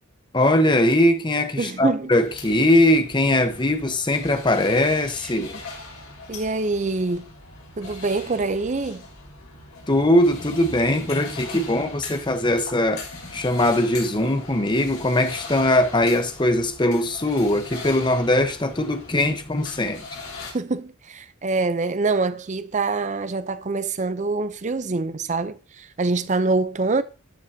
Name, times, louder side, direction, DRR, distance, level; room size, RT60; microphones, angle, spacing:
voice 1, 0.3-5.5 9.9-13.1 13.3-20.0, left 1 dB, 20° left, 0.9 m, -21 dB
voice 2, 1.6-2.1 5.4-5.5 6.3-7.3 7.8-9.0 20.5-27.0, right 3 dB, 35° right, 0.5 m, -25 dB
sound 1, 2.2-20.5, left 3 dB, 80° left, 3.8 m, -40 dB
12.5 x 7.5 x 2.8 m
head